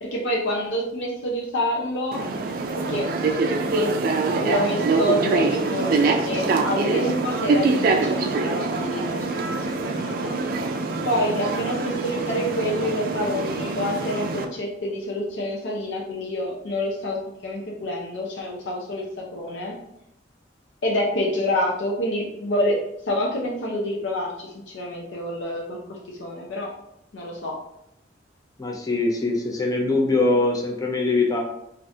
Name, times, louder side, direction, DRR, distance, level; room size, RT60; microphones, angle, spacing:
voice 1, 0.0-2.2 2.9-3.1 3.6-4.0 4.4-10.4 11.0-19.7 20.8-22.8 23.0-24.3 24.7-26.7 27.1-27.5, left 1 dB, 90° left, -2 dB, 0.6 m, -27 dB
sound 1, 2.1-14.5, right 3 dB, 50° right, 0.3 m, -24 dB
voice 2, 28.6-31.4, left 2 dB, 20° left, 0 dB, 0.4 m, -22 dB
3.4 x 2.5 x 2.6 m, 0.80 s
head